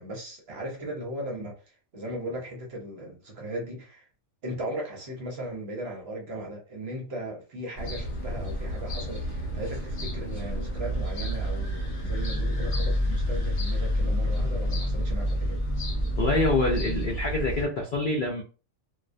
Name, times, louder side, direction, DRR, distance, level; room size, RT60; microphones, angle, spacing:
voice 1, 0.0-1.5 1.9-4.1 4.4-15.6, right 1 dB, 55° right, 0.8 m, -37 dB
sound 1, 7.8-17.7, equal, 45° left, 1.0 m, -29 dB
voice 2, 16.2-18.4, left 2 dB, 70° left, 0.5 m, -26 dB
2.3 x 2.1 x 2.5 m
omnidirectional pair, 1.4 m